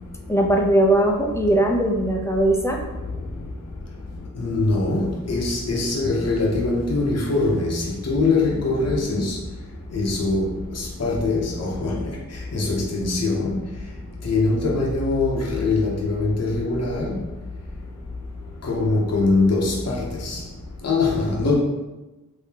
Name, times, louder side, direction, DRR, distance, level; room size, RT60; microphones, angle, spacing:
voice 1, 0.3-2.8 9.0-9.3, right 1 dB, 10° left, 1 dB, 0.4 m, -20 dB
voice 2, 4.4-9.4 9.9-10.5 10.8-12.0 12.5-13.5 14.2-17.1 18.7-20.4 20.8-21.5, left 3 dB, 45° left, -3 dB, 0.7 m, -22 dB
3.6 x 2.7 x 2.8 m, 1.1 s
wide cardioid pair, 95°, 35 cm